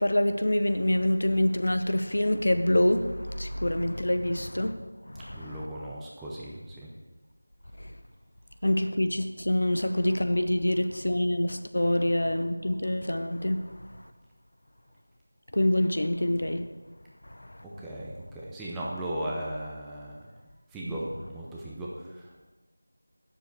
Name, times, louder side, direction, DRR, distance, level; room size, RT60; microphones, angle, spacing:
voice 1, 0.0-4.7 5.1-5.7 7.8-7.9 8.6-13.6 15.5-16.7 17.2-17.6 20.8-21.0, left 1 dB, 70° left, 8 dB, 0.8 m, -26 dB
voice 2, 5.3-6.9 17.6-20.3 20.7-22.3, right 1 dB, 5° right, -6 dB, 0.6 m, -37 dB
9.1 x 7.1 x 4.8 m, 1.3 s
figure-of-eight pair, 175°, 0 cm